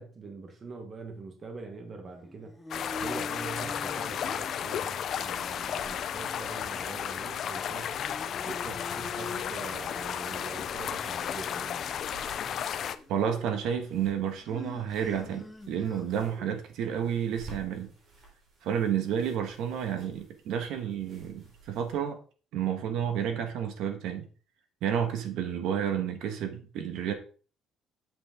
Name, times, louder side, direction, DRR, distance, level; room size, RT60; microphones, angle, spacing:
voice 1, 0.0-2.6 3.0-8.0 8.4-11.9, right 3 dB, 25° right, 1.2 m, -43 dB
sound 1, 2.1-16.6, left 2 dB, 5° left, 0.7 m, -46 dB
sound 2, 2.7-13.0, left 9 dB, 45° left, 0.5 m, -33 dB
sound 3, 4.8-22.0, right 3 dB, 45° right, 3.7 m, -55 dB
voice 2, 13.1-17.9 18.6-22.2 22.5-24.3 24.8-27.1, right 8 dB, 70° right, 1.4 m, -31 dB
8.0 x 7.5 x 3.7 m
cardioid pair, 175°, 0 cm